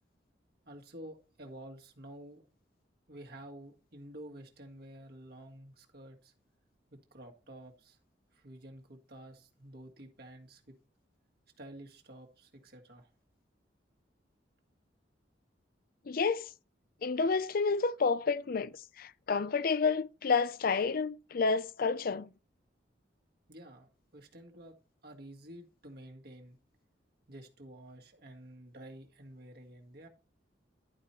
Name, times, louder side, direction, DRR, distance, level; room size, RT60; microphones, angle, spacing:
voice 1, 0.7-2.5 3.1-6.3 6.9-8.0 8.3-10.8 11.6-13.1 23.5-24.8 25.0-26.6 27.3-30.1, right 1 dB, 60° right, 1.8 m, -50 dB
voice 2, 16.1-16.5 17.0-22.3, left 4 dB, 55° left, 0.5 m, -30 dB
11.5 x 4.9 x 4.4 m
head